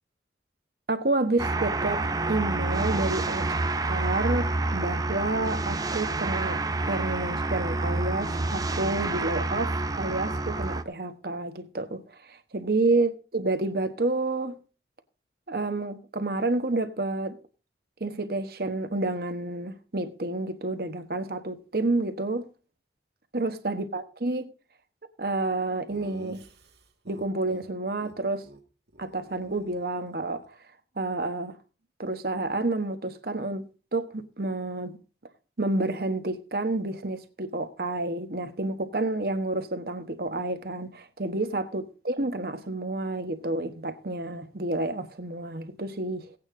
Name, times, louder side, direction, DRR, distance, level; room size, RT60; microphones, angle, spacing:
voice 1, 0.9-3.6 3.8-14.6 15.5-17.4 18.0-22.5 23.3-24.5 25.2-26.4 27.1-28.5 29.0-30.5 31.0-31.6 32.0-35.0 35.6-46.3, right 2 dB, 55° right, 1.2 m, -29 dB
sound 1, 1.4-10.8, right 2 dB, 20° right, 0.6 m, -28 dB
Laughter, 25.9-27.7 28.0-28.1 28.4-28.6 28.9-30.5, right 1 dB, 75° right, 1.8 m, -48 dB
16.5 x 8.9 x 3.8 m
head